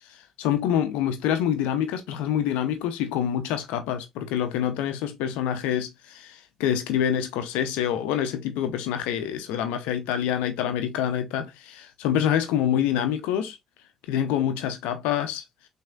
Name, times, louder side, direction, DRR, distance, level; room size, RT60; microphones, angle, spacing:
voice 1, 0.4-13.6 14.1-15.4, left 10 dB, 75° left, 0.5 m, -26 dB
6.1 x 2.7 x 2.3 m
hypercardioid pair, 45°, 2 cm